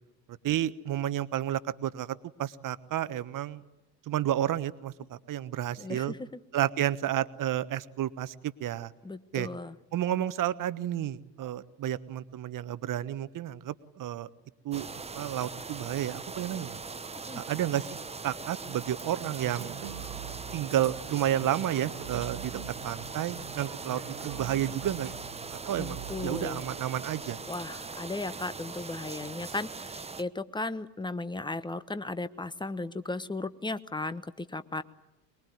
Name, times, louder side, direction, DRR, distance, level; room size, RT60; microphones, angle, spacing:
voice 1, 0.4-3.6 4.1-6.1 6.5-8.9 9.3-9.5 9.9-14.3 14.6-14.9 15.1-16.8 17.3-17.9 18.2-19.8 20.5-22.6 22.8-25.1 25.5-27.4, right 12 dB, 40° right, 14 dB, 1.2 m, -31 dB
voice 2, 5.8-6.2 9.0-9.7 17.3-17.4 25.8-26.6 27.5-34.8, left 2 dB, 10° left, 13 dB, 1.2 m, -36 dB
sound 1, 14.7-30.2, right 4 dB, 10° right, 1.1 m, -41 dB
sound 2, 19.2-26.5, right 9 dB, 60° right, 2.1 m, -43 dB
23.0 x 22.5 x 9.4 m, 0.97 s
hypercardioid pair, 70°, 50 cm